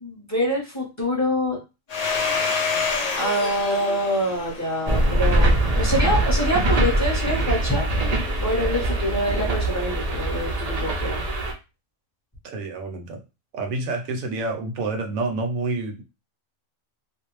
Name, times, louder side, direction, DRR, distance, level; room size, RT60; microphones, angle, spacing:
voice 1, 0.0-1.6 3.2-7.9 8.4-11.2, equal, 15° left, -3 dB, 0.6 m, -25 dB
Domestic sounds home sounds, 1.9-6.3, left 4 dB, 85° left, 0.3 m, -28 dB
sound 1, 4.9-11.5, right 1 dB, 55° right, 0.4 m, -22 dB
voice 2, 12.4-13.2 13.5-16.0, right 3 dB, 80° right, 4 dB, 1.0 m, -28 dB
2.5 x 2.0 x 3.0 m, 0.28 s
omnidirectional pair, 1.4 m